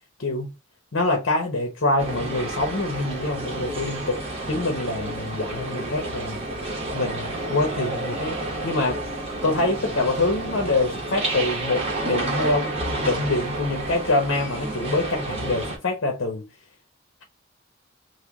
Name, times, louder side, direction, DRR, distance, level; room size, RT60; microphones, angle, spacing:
voice 1, 0.2-0.5 0.9-4.2 4.5-6.4 6.9-8.4 8.6-9.0 9.4-16.4, left 2 dB, 75° left, 0.8 m, -25 dB
sound 1, 2.0-15.8, right 2 dB, 30° right, 0.9 m, -30 dB
3.3 x 2.2 x 3.4 m
head